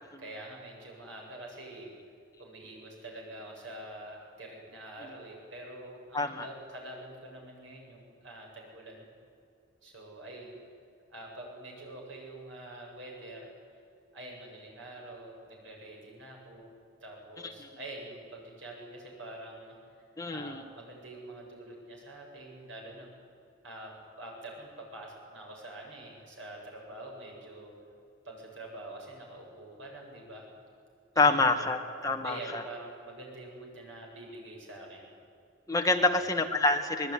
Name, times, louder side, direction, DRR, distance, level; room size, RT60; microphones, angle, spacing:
voice 1, 0.2-1.9 2.4-9.1 9.8-10.6 11.1-13.5 14.1-16.7 17.0-19.8 20.3-23.1 23.6-27.7 28.2-30.5 31.1-31.7 32.2-35.1 35.9-36.3, right 1 dB, 75° right, -1 dB, 7.7 m, -46 dB
voice 2, 6.1-6.5 17.4-17.7 20.2-20.6 31.1-32.6 35.7-37.1, left 2 dB, 15° left, 4 dB, 1.6 m, -27 dB
24.0 x 20.0 x 9.8 m, 2.5 s
head